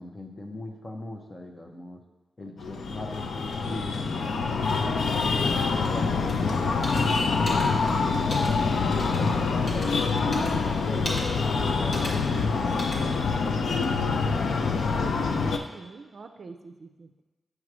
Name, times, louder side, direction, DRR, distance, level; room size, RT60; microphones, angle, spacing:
voice 1, 0.0-2.0 2.4-5.5 5.8-11.1 11.5-13.8, left 1 dB, 25° left, 2 dB, 0.8 m, -40 dB
Breathing, 2.6-15.6, left 4 dB, 85° left, 0.5 m, -26 dB
sound 1, 6.3-6.4 6.8-7.0 7.5-7.7 8.3-8.5 9.0-9.2 9.7-9.9 10.3-10.5 11.1-11.2 11.9-12.1 12.8-13.0, equal, 45° left, 1.5 m, -34 dB
voice 2, 14.9-17.2, right 4 dB, 55° right, 6 dB, 0.4 m, -44 dB
7.7 x 3.1 x 6.1 m, 1.2 s
wide cardioid pair, 150°, 0 cm